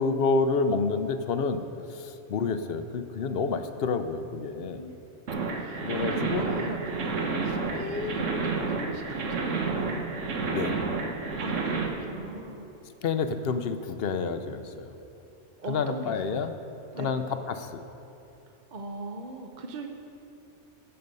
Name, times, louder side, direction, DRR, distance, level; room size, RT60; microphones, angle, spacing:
voice 1, 0.0-1.6 1.9-4.8 5.8-6.5 7.7-7.9 10.4-10.8 13.0-14.9 15.7-16.5 17.0-17.8, left 4 dB, 60° left, 9 dB, 0.7 m, -29 dB
sound 1, 5.3-11.9, right 4 dB, 80° right, 1.4 m, -30 dB
voice 2, 5.5-10.0 11.4-12.6 13.7-13.8 15.6-16.4 16.9-17.1 18.7-19.9, right 1 dB, 45° right, 4 dB, 0.7 m, -38 dB
15.5 x 6.8 x 5.4 m, 2.9 s
omnidirectional pair, 1.3 m